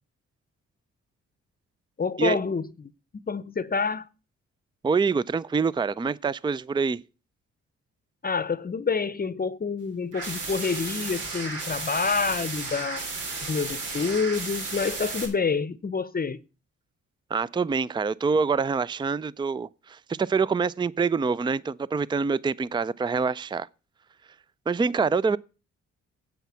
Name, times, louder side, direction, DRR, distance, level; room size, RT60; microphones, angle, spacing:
voice 1, 2.0-2.7 3.3-4.1 8.2-13.0 13.4-16.4, left 5 dB, 30° left, 0.8 m, -27 dB
voice 2, 4.8-7.0 17.3-23.7 24.7-25.4, right 5 dB, 15° right, 0.4 m, -25 dB
sound 1, 10.1-15.3, right 3 dB, 90° right, 3.2 m, -34 dB
9.2 x 8.3 x 5.6 m
supercardioid pair, 55°, 30 cm